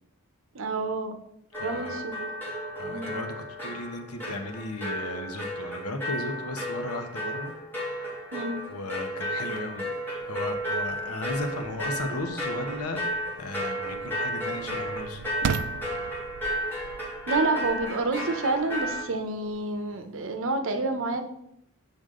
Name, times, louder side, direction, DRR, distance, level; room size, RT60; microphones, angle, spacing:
voice 1, 0.5-1.2 1.6-2.2 2.9-3.2 8.3-8.6 17.3-21.2, right 3 dB, 65° right, 7 dB, 0.9 m, -28 dB
sound 1, 1.5-19.0, equal, 10° left, 2.8 m, -33 dB
voice 2, 1.6-2.0 2.8-7.5 8.7-9.9 10.2-13.0 13.4-15.2, left 2 dB, 80° left, 6 dB, 1.0 m, -35 dB
sound 2, 9.4-20.3, right 6 dB, 85° right, 0.4 m, -40 dB
7.2 x 6.6 x 3.8 m, 0.77 s
head